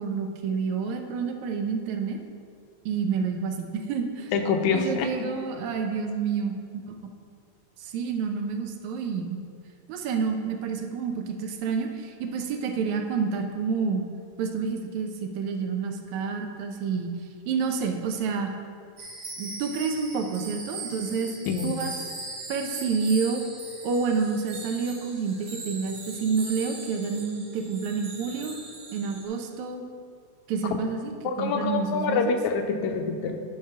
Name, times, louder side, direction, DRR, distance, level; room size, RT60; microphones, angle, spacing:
voice 1, 0.0-2.2 2.9-4.3 4.7-6.5 7.8-9.4 9.9-14.0 14.4-17.1 17.5-18.5 19.4-21.3 21.6-21.9 22.5-23.4 23.8-28.6 28.9-29.8 30.5-31.1 31.4-32.4, right 5 dB, 80° right, 4 dB, 2.1 m, -29 dB
voice 2, 4.3-5.1 21.5-21.7 31.2-33.4, left 5 dB, 85° left, 5 dB, 2.1 m, -26 dB
sound 1, 19.0-29.2, right 2 dB, 50° right, 2.3 m, -40 dB
10.5 x 4.8 x 5.6 m, 2.2 s
omnidirectional pair, 3.3 m